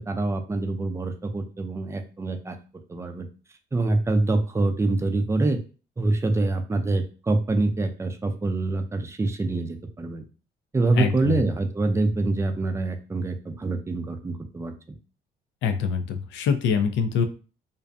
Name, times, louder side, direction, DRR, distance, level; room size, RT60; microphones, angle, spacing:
voice 1, 0.0-2.6 2.9-3.3 3.7-5.6 6.0-10.3 10.7-14.7, right 2 dB, 15° right, 6 dB, 0.4 m, -25 dB
voice 2, 10.9-11.4 15.6-17.3, left 6 dB, 75° left, 8 dB, 0.4 m, -24 dB
2.5 x 2.1 x 2.5 m, 0.37 s
cardioid pair, 80°, 19 cm